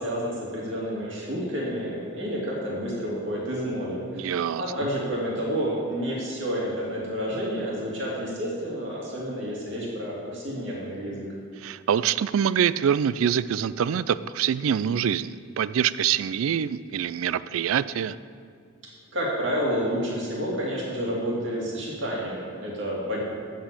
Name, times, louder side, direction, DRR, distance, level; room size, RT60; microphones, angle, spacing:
voice 1, 0.0-11.3 19.1-23.2, equal, 60° right, -4 dB, 2.6 m, -30 dB
voice 2, 4.1-4.6 11.6-18.2, right 8 dB, 85° right, 17 dB, 0.3 m, -25 dB
8.7 x 7.8 x 6.9 m, 2.2 s
head